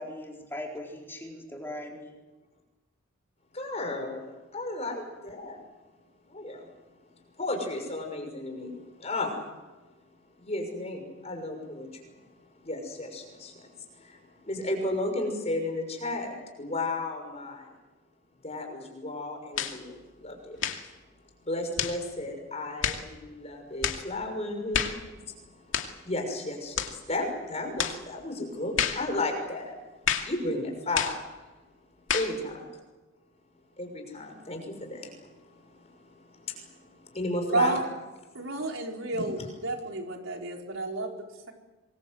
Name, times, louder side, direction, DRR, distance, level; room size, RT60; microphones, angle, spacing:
voice 1, 0.0-2.2, left 1 dB, 10° left, 0 dB, 4.3 m, -39 dB
voice 2, 3.5-5.6 6.3-6.7 7.4-9.5 10.4-12.2 12.5-17.7 18.4-20.6 21.4-31.2 32.1-32.7 33.8-37.8, left 2 dB, 30° left, 4 dB, 6.3 m, -34 dB
sound 1, 19.6-19.8 20.6-20.9 21.8-22.0 22.8-23.1 23.8-24.1 24.7-25.0 25.7-26.0 26.8-27.0 27.8-28.0 28.8-29.1 30.1-30.4 31.0-31.2 32.1-32.4, left 8 dB, 70° left, 2.5 m, -29 dB
voice 3, 37.5-37.9 38.3-41.5, right 2 dB, 75° right, 1 dB, 4.5 m, -31 dB
26.5 x 22.5 x 8.0 m, 1.2 s
head